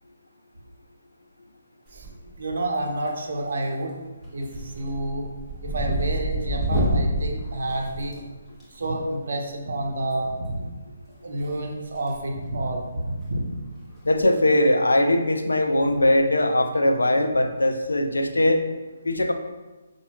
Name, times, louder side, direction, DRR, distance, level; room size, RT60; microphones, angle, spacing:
sound 1, 1.9-2.4 2.7-3.3 3.6-3.9 4.2-8.6 10.0-10.1 11.4-12.2 12.5-12.7 13.2-13.3 13.6-13.7 14.0-14.2 14.5-14.6 16.1-16.4, right 1 dB, ahead, 1.3 m, -28 dB
voice 1, 2.4-3.9 4.3-5.3 5.6-8.2 8.7-10.6 11.2-13.4, right 1 dB, 65° right, 1 dB, 0.8 m, -29 dB
voice 2, 14.0-18.7 19.0-19.3, left 1 dB, 85° left, 5 dB, 0.5 m, -20 dB
5.5 x 2.7 x 2.9 m, 1.2 s
figure-of-eight pair, 145°, 0 cm